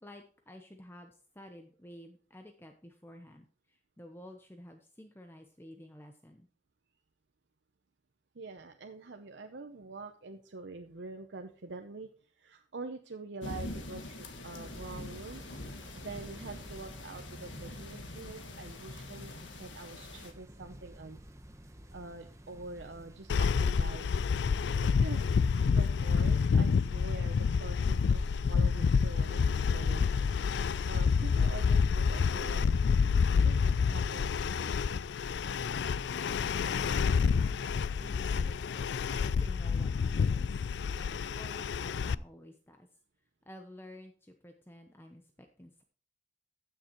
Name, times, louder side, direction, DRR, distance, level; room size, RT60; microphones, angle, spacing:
voice 1, 0.0-6.5 36.4-38.9 39.2-40.6 41.0-42.9 43.5-45.8, left 1 dB, 10° left, 4 dB, 0.9 m, -51 dB
voice 2, 8.3-12.1 12.4-15.4 15.9-19.3 19.6-21.2 21.9-24.1 25.0-25.2 25.7-30.4 30.8-33.0 33.4-34.3, right 3 dB, 70° right, 5 dB, 0.8 m, -45 dB
sound 1, 13.4-20.3, left 2 dB, 85° left, 1.7 m, -44 dB
sound 2, 14.6-33.0, right 1 dB, 15° right, 1.0 m, -53 dB
sound 3, 23.3-42.1, left 5 dB, 65° left, 0.4 m, -28 dB
15.0 x 6.7 x 3.1 m, 0.44 s
head